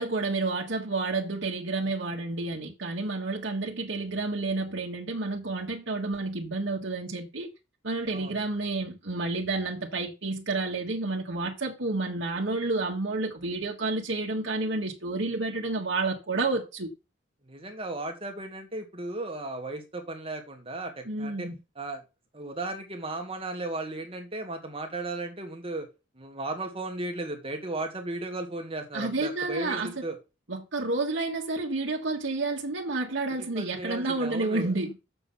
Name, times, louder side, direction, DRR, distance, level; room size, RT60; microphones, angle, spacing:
voice 1, 0.0-7.5 7.8-16.9 21.0-21.5 28.9-30.0 30.5-35.0, right 3 dB, 70° right, 1.6 m, -30 dB
voice 2, 17.4-21.5 21.8-22.0 22.3-25.9 26.2-30.2 33.4-34.7, right 2 dB, 30° right, 1.9 m, -35 dB
7.0 x 6.8 x 5.7 m
head